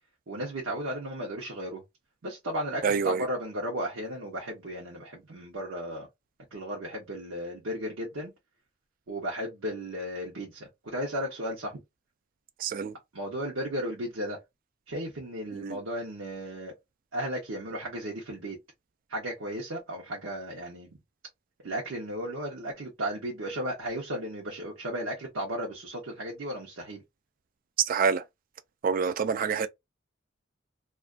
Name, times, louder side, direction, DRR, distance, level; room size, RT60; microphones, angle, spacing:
voice 1, 0.3-1.8 2.2-6.1 6.5-8.3 9.1-11.8 13.1-14.4 14.9-16.7 17.1-18.6 19.1-20.9 21.6-27.0, equal, 75° right, 0.8 m, -35 dB
voice 2, 2.8-3.3 12.6-13.0 15.5-15.8 27.8-28.3 28.8-29.7, right 6 dB, 45° right, 0.3 m, -27 dB
2.3 x 2.2 x 2.4 m
head